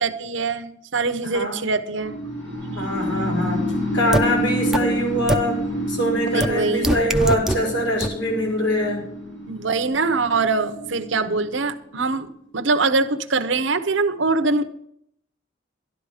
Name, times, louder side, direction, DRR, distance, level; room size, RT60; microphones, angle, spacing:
voice 1, 0.0-2.2 6.3-6.9 9.5-12.3 12.5-14.6, right 3 dB, 70° right, 9 dB, 0.9 m, -23 dB
sound 1, 2.0-12.0, equal, 85° left, 6.0 m, -28 dB
voice 2, 2.7-3.6 3.9-5.6 5.9-9.0 11.2-11.3, equal, 65° left, -2 dB, 5.5 m, -23 dB
sound 2, 4.1-4.2 4.7-4.8 5.3-5.4 6.4-6.5 6.8-7.6 8.0-8.1, right 1 dB, ahead, 0.7 m, -20 dB
12.0 x 12.0 x 5.0 m, 0.70 s
head